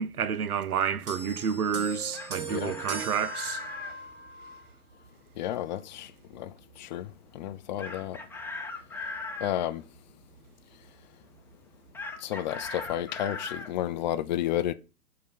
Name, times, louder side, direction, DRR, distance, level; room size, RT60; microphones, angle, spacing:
voice 1, 0.0-3.6, right 7 dB, 80° right, 0.9 m, -29 dB
sound 1, 1.1-4.7 5.6-5.7, right 4 dB, 25° right, 2.8 m, -39 dB
Chicken rooster, 1.9-4.0 7.8-9.5 11.9-13.7, left 3 dB, 5° left, 1.0 m, -38 dB
voice 2, 5.3-8.2 9.4-9.9 12.2-14.7, left 12 dB, 30° left, 0.4 m, -32 dB
11.5 x 3.8 x 5.5 m
figure-of-eight pair, 115°, 44 cm